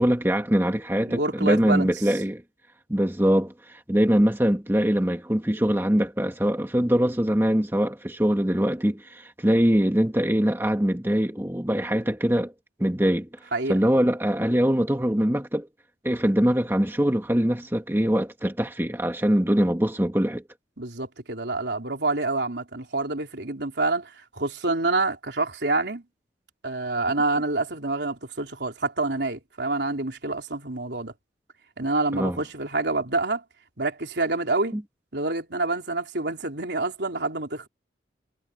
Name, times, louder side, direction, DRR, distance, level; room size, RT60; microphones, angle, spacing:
voice 1, 0.0-2.4 2.9-12.5 12.8-13.3 13.7-15.7 16.0-20.4 32.1-32.4 34.7-34.8, equal, 10° right, 1.5 m, -23 dB
voice 2, 1.0-1.9 13.5-13.8 20.8-26.0 26.6-31.1 31.8-33.4 33.8-34.8 35.1-37.7, right 2 dB, 70° right, 3.5 m, -27 dB
head